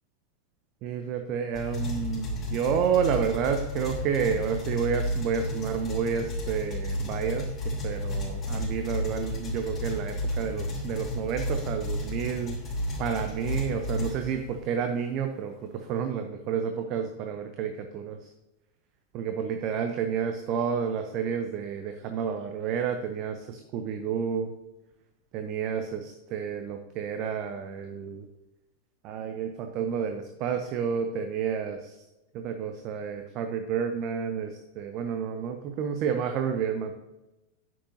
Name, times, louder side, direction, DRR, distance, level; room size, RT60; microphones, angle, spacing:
voice 1, 0.8-7.5 7.8-12.6 13.0-18.3 19.1-24.5 25.3-28.3 29.0-32.0 32.3-36.9, right 7 dB, 40° right, 6 dB, 0.7 m, -30 dB
sound 1, 1.5-14.7, left 1 dB, 20° left, 3.1 m, -32 dB
10.0 x 7.5 x 2.7 m, 0.99 s
figure-of-eight pair, 90°, 0 cm